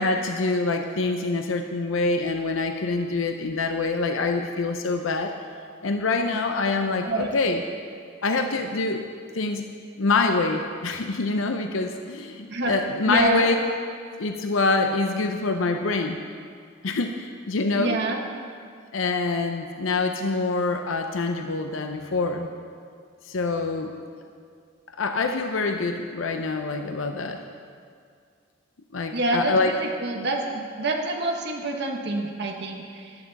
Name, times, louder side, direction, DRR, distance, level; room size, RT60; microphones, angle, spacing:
voice 1, 0.0-5.3 5.8-7.6 8.2-9.0 9.3-9.7 10.0-13.6 14.2-16.2 16.8-18.0 18.9-22.5 23.3-23.9 24.9-27.4 28.9-29.7, left 3 dB, 85° left, 5 dB, 0.7 m, -25 dB
voice 2, 13.0-13.5 17.8-18.2 29.1-33.2, right 2 dB, 60° right, 1 dB, 1.3 m, -27 dB
14.5 x 11.5 x 4.1 m, 2.2 s
head